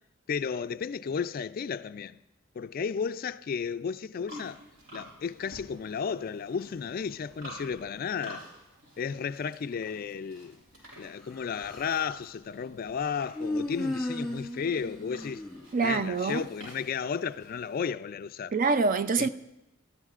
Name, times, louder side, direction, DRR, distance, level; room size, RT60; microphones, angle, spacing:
voice 1, 0.3-2.2 2.6-4.6 4.9-8.5 9.0-10.6 11.0-15.4 15.8-18.5 19.2-19.3, left 6 dB, 50° left, 0.3 m, -33 dB
Livestock farm animals working animals, 4.3-17.9, equal, 70° right, 5.3 m, -51 dB
Human voice, 11.2-12.2 13.3-16.1, left 1 dB, ahead, 2.0 m, -35 dB
voice 2, 15.7-16.4 18.5-19.3, right 4 dB, 45° right, 0.5 m, -25 dB
22.0 x 13.5 x 2.4 m
head